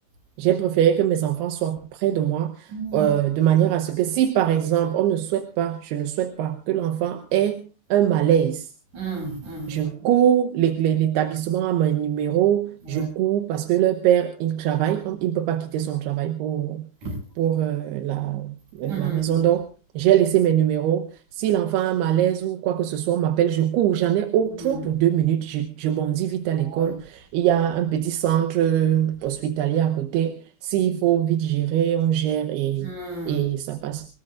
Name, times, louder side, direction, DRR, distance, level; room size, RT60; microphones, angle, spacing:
voice 1, 0.4-8.7 9.7-16.9 17.4-19.7 19.9-32.9 33.3-34.1, right 11 dB, 75° right, 2.7 m, -22 dB
voice 2, 2.7-3.1 8.9-9.9 12.9-13.1 17.0-17.1 18.9-19.4 24.6-24.8 26.7-26.9 32.8-33.5, right 3 dB, 45° right, 9.1 m, -32 dB
26.5 x 19.0 x 2.5 m
omnidirectional pair, 5.1 m